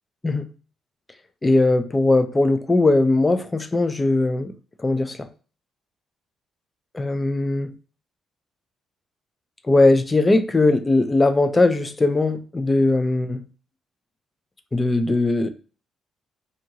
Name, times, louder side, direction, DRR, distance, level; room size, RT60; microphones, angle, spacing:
voice 1, 1.4-4.5 4.8-5.3 6.9-7.7 9.6-13.4 14.7-15.5, left 2 dB, 20° left, 0.4 m, -19 dB
2.6 x 2.5 x 2.9 m
cardioid pair, 90°, 0 cm